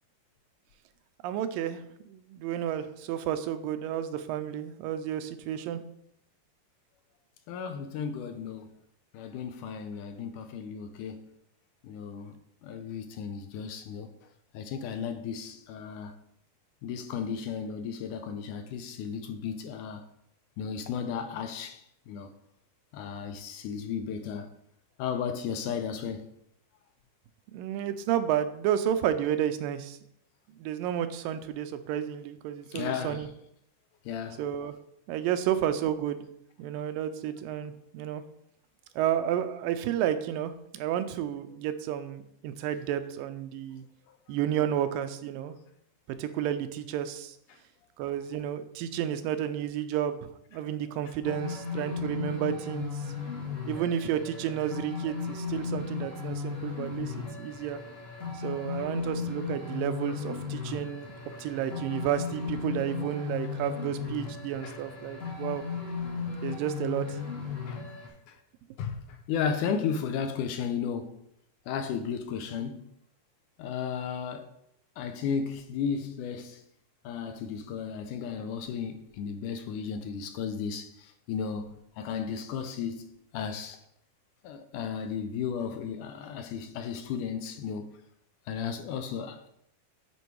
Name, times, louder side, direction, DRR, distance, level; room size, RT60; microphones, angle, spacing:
voice 1, 1.2-5.8 27.5-30.0 30.6-33.3 34.4-34.8 35.1-36.3 36.6-38.2 39.0-43.8 44.3-45.6 46.2-47.4 48.0-52.9 53.7-57.8 58.3-61.1 61.4-65.6 66.4-67.2, right 10 dB, 85° right, 2.3 m, -31 dB
voice 2, 7.5-8.7 9.1-11.3 11.8-12.4 12.6-14.1 14.5-16.2 16.8-20.0 20.6-22.3 22.9-24.5 25.0-26.3 32.7-33.3 34.1-34.4 47.5-47.6 58.7-58.8 60.7-60.8 61.3-61.4 64.6-64.8 65.3-65.4 67.7-67.8 68.3-68.4 68.8-71.2 71.7-72.8 73.6-74.5 75.0-76.6 77.0-83.0 83.3-83.8 84.4-88.0 88.5-89.5, left 7 dB, 80° left, 2.0 m, -34 dB
sound 1, 51.2-68.1, left 5 dB, 30° left, 1.9 m, -36 dB
10.0 x 4.4 x 4.6 m
omnidirectional pair, 4.0 m